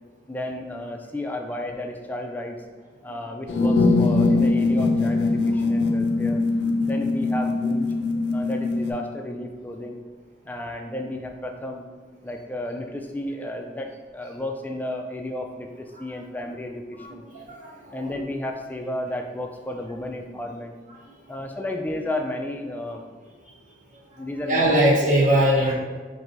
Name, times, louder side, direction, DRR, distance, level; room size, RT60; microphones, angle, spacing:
voice 1, 0.3-2.6 3.0-6.4 6.9-7.9 8.2-10.0 10.4-11.9 12.2-17.3 17.9-20.8 21.3-23.0 24.2-24.9, left 1 dB, 10° left, 3 dB, 0.3 m, -32 dB
sound 1, 3.5-8.9, left 3 dB, 70° left, 0.5 m, -21 dB
voice 2, 17.0-18.1 24.1-25.7, right 1 dB, 45° right, -4 dB, 1.0 m, -22 dB
4.4 x 2.6 x 3.8 m, 1.5 s
head